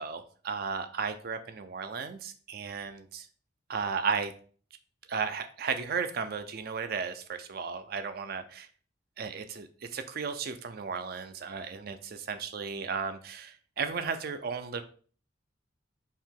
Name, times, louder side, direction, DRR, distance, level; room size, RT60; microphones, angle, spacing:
voice 1, 0.0-3.3 3.7-4.3 5.1-8.7 9.2-14.8, right 5 dB, 50° right, 9 dB, 0.4 m, -34 dB
4.5 x 2.9 x 3.7 m, 0.43 s
head